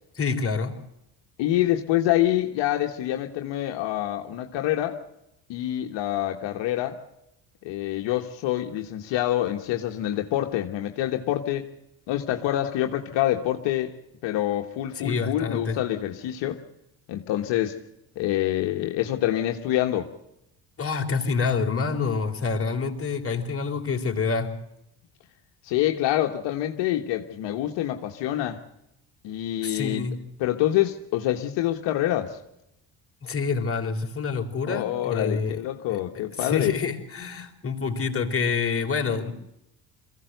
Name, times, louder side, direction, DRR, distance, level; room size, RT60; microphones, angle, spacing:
voice 1, 0.2-0.8 15.0-15.8 20.8-24.5 29.6-30.2 33.2-35.6 35.9-36.0 36.3-39.3, left 5 dB, 30° left, 1 dB, 3.9 m, -27 dB
voice 2, 1.4-5.0 5.5-7.0 7.6-11.7 12.1-13.9 14.2-16.6 17.1-17.8 18.1-20.1 25.6-28.6 29.2-30.1 30.4-32.4 34.7-36.8, left 13 dB, 80° left, 4 dB, 1.5 m, -26 dB
22.5 x 16.0 x 7.9 m, 0.85 s
supercardioid pair, 75°, 43 cm